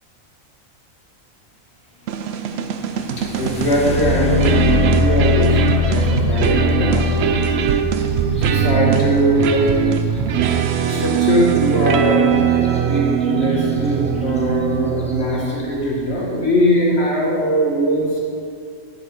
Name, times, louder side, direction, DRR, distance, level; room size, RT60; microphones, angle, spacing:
sound 1, 2.1-15.6, right 8 dB, 65° right, 0.7 m, -21 dB
sound 2, 2.7-10.6 12.6-12.8 13.2-13.8 14.4-14.5 15.0-15.3, left 4 dB, 5° left, 0.8 m, -22 dB
voice 1, 3.3-7.1 7.6-7.7 8.4-9.7 10.3-10.5 10.9-18.2, equal, 50° left, -3 dB, 1.7 m, -20 dB
10.5 x 5.0 x 5.2 m, 2.4 s
omnidirectional pair, 1.4 m